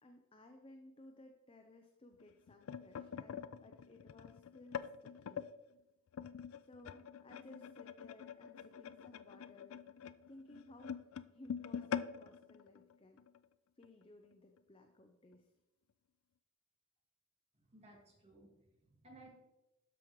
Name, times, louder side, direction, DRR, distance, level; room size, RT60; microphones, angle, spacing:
voice 1, 0.0-5.5 6.6-9.8 10.3-13.2 13.8-15.5, left 1 dB, 25° left, 4 dB, 0.6 m, -59 dB
sound 1, 2.2-5.5 6.1-13.4 13.8-14.0 14.3-14.6 15.3-15.4, left 7 dB, 70° left, 0.3 m, -45 dB
voice 2, 17.5-19.3, right 2 dB, 30° right, -1 dB, 1.9 m, -60 dB
13.0 x 5.1 x 3.1 m, 0.94 s
head